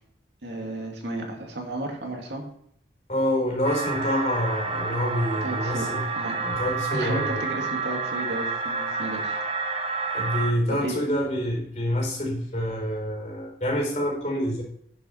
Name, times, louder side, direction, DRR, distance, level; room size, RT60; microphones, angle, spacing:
voice 1, 0.4-2.5 5.4-6.4 6.9-9.4 10.7-11.0, right 1 dB, 80° right, 1 dB, 2.5 m, -33 dB
voice 2, 3.1-6.1 6.4-7.4 10.1-14.6, equal, 40° left, 0 dB, 4.5 m, -27 dB
sound 1, 3.6-10.5, right 4 dB, 30° right, 0.9 m, -29 dB
10.5 x 7.4 x 4.6 m, 0.69 s
head